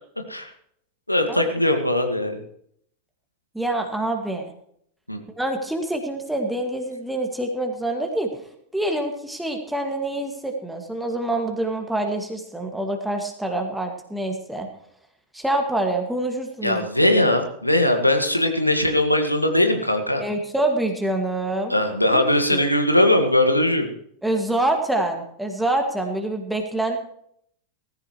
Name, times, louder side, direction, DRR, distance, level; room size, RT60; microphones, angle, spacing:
voice 1, 1.1-2.4 5.1-5.2 16.6-20.2 21.7-23.9, left 1 dB, 85° left, 5 dB, 1.9 m, -20 dB
voice 2, 3.5-4.5 5.4-8.3 8.7-14.7 15.3-16.8 17.1-17.2 20.2-21.7 22.1-22.2 22.5-22.6 24.2-27.0, right 1 dB, 5° right, 3 dB, 2.1 m, -26 dB
18.5 x 15.5 x 3.2 m, 0.68 s
figure-of-eight pair, 90°, 0 cm